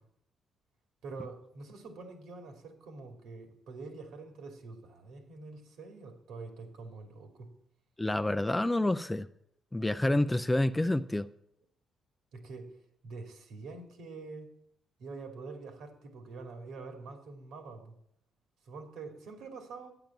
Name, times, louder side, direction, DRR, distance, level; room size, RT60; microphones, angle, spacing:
voice 1, 1.0-7.5 12.3-12.7 13.0-14.5 15.0-17.9 18.7-19.9, right 3 dB, 80° right, 4 dB, 2.7 m, -45 dB
voice 2, 8.0-9.3 9.7-11.3, left 1 dB, 10° left, 11 dB, 0.5 m, -28 dB
12.0 x 9.0 x 7.3 m, 0.73 s
cardioid pair, 90°, 0 cm